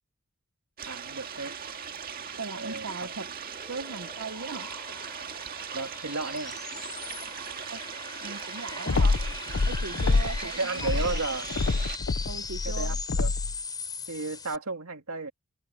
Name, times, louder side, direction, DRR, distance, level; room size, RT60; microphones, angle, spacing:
sound 1, 0.8-12.0, right 7 dB, 45° right, 1.9 m, -39 dB
voice 1, 0.9-1.6 2.5-2.9 5.7-6.6 10.4-11.5 12.6-13.3 14.1-15.3, right 3 dB, 90° right, 2.5 m, -33 dB
voice 2, 2.4-3.3 3.7-4.7 7.7-7.9 8.2-9.2 9.7-11.2 12.2-13.0, right 4 dB, 70° right, 0.9 m, -39 dB
sound 2, 3.2-14.6, left 5 dB, 20° left, 5.7 m, -40 dB
sound 3, 8.9-10.5 10.8-13.6, left 3 dB, 65° left, 0.7 m, -26 dB
head